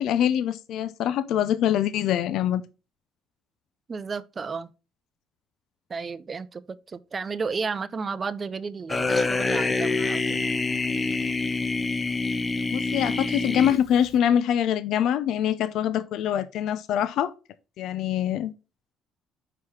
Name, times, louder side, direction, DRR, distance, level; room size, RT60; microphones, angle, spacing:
voice 1, 0.0-2.6 12.7-17.3 17.8-18.5, left 10 dB, 70° left, 0.5 m, -24 dB
voice 2, 3.9-4.7 5.9-10.4, right 5 dB, 30° right, 0.5 m, -33 dB
sound 1, 8.9-14.2, left 3 dB, 20° left, 0.7 m, -26 dB
5.8 x 4.8 x 4.7 m
cardioid pair, 115°, 0 cm